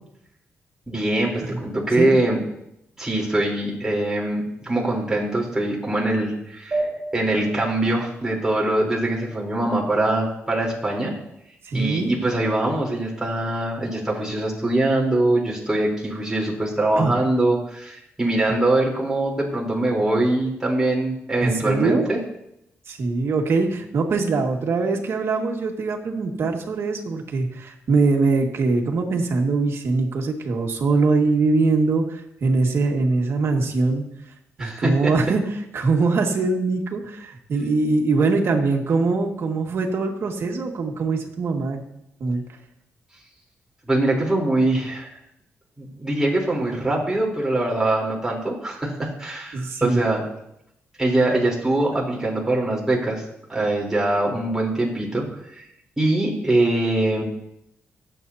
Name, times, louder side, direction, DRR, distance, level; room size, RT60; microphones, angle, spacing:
voice 1, 0.9-2.4 3.0-6.8 7.1-11.1 11.7-22.2 34.6-35.1 43.9-45.1 45.8-50.2 51.0-53.2 53.5-55.2 55.5-55.6 56.0-57.2, right 2 dB, 10° right, -3 dB, 3.8 m, -23 dB
sound 1, 6.7-9.7, right 2 dB, 30° right, 5.2 m, -33 dB
voice 2, 11.6-12.1 17.0-17.1 21.4-22.1 22.9-34.0 34.6-41.8 42.2-42.4 49.5-50.0, right 3 dB, 65° right, 2 dB, 2.0 m, -22 dB
25.0 x 8.5 x 2.8 m, 0.80 s
cardioid pair, 95°, 5 cm